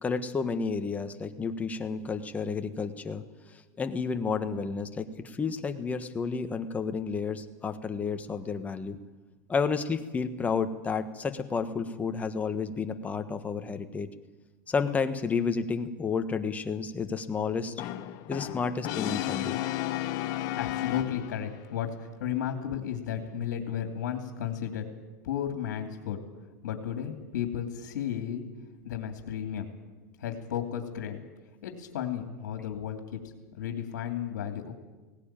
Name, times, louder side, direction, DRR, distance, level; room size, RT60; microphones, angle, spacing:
voice 1, 0.0-3.2 3.5-9.0 9.5-14.1 14.7-17.7 18.3-19.6, left 5 dB, 15° left, 8 dB, 1.3 m, -31 dB
Brass instrument, 17.8-21.6, left 14 dB, 45° left, 1.1 m, -33 dB
voice 2, 20.3-24.8 25.2-26.2 26.6-28.4 28.8-29.7 30.2-31.2 31.6-33.2 33.6-34.7, left 9 dB, 80° left, 4 dB, 2.6 m, -34 dB
18.0 x 17.0 x 8.9 m, 1.2 s
supercardioid pair, 135°, 10 cm